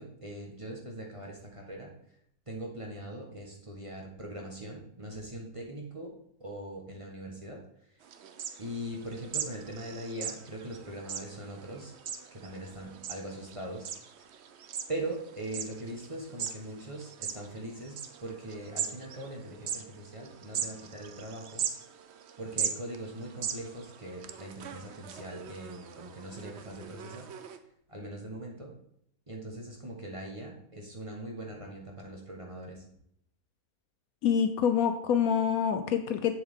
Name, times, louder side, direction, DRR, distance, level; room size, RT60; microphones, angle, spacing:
voice 1, 0.0-1.9 2.5-6.1 6.4-7.6 8.6-11.9 12.3-13.9 14.2-14.3 14.9-18.0 18.2-21.6 22.4-27.3 27.9-28.7 29.3-32.8, right 1 dB, 20° right, -1 dB, 1.3 m, -41 dB
sound 1, 8.0-27.6, right 8 dB, 60° right, 0.7 m, -40 dB
voice 2, 34.2-36.4, left 8 dB, 70° left, 8 dB, 1.0 m, -26 dB
7.9 x 7.0 x 3.7 m, 0.71 s
omnidirectional pair, 1.7 m